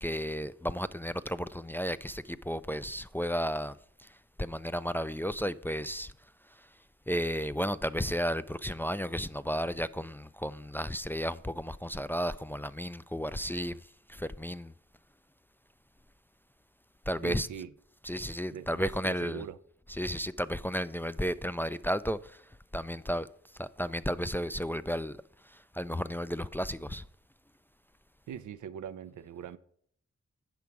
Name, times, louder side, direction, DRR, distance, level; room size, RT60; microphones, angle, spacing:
voice 1, 0.0-6.1 6.5-6.7 7.1-14.7 17.1-17.5 18.0-19.4 19.9-22.5 22.7-23.3 23.6-25.2 25.4-27.0, equal, 5° left, 0.3 m, -33 dB
voice 2, 17.2-17.7 18.5-19.6 28.3-29.6, right 8 dB, 90° right, 0.5 m, -41 dB
8.6 x 5.9 x 4.6 m
cardioid pair, 45°, 29 cm